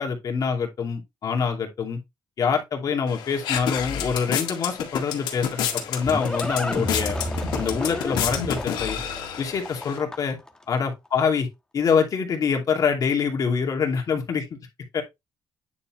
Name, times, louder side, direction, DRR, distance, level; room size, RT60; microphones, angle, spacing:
voice 1, 0.0-2.0 2.4-7.2 7.5-9.0 9.4-10.4 10.7-11.5 11.7-14.6 14.9-15.0, left 6 dB, 50° left, 2.5 m, -25 dB
sound 1, 3.1-10.0, left 8 dB, 85° left, 1.9 m, -30 dB
Livestock farm animals working animals, 5.4-10.5, left 1 dB, 10° left, 1.2 m, -31 dB
9.7 x 4.2 x 3.1 m
cardioid pair, 105°, 8 cm